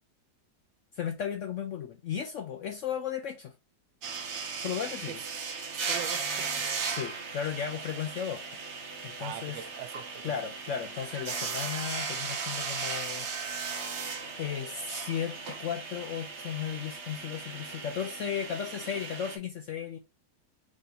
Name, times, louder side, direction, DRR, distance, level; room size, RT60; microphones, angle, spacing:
voice 1, 0.9-3.5 4.6-5.2 6.9-8.4 9.0-9.6 10.2-13.6 14.4-20.0, left 8 dB, 70° left, 0.7 m, -35 dB
sound 1, 4.0-19.4, right 5 dB, 50° right, 0.9 m, -37 dB
voice 2, 5.7-6.7 9.2-10.8, right 11 dB, 85° right, 1.2 m, -43 dB
3.7 x 2.6 x 3.9 m
omnidirectional pair, 1.8 m